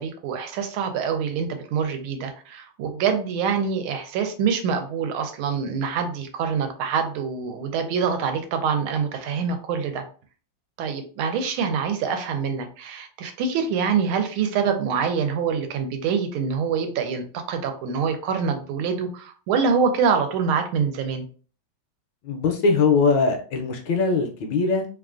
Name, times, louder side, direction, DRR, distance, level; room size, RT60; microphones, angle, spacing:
voice 1, 0.0-10.0 10.8-21.2, right 6 dB, 80° right, 6 dB, 1.4 m, -25 dB
voice 2, 22.2-24.9, left 4 dB, 75° left, 3 dB, 1.2 m, -21 dB
3.3 x 2.4 x 2.4 m, 0.41 s
omnidirectional pair, 2.3 m